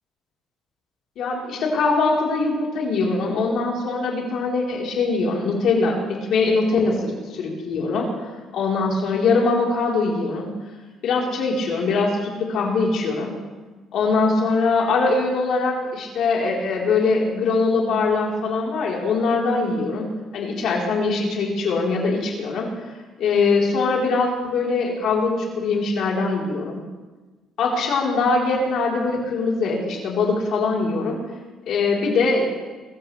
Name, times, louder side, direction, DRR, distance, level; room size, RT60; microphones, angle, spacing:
voice 1, 1.2-8.1 8.5-10.5 11.0-13.3 13.9-20.1 20.3-22.7 23.2-26.8 27.6-31.2 31.7-32.5, left 3 dB, 65° left, -2 dB, 4.0 m, -22 dB
23.5 x 13.5 x 3.4 m, 1.3 s
cardioid pair, 135°, 0 cm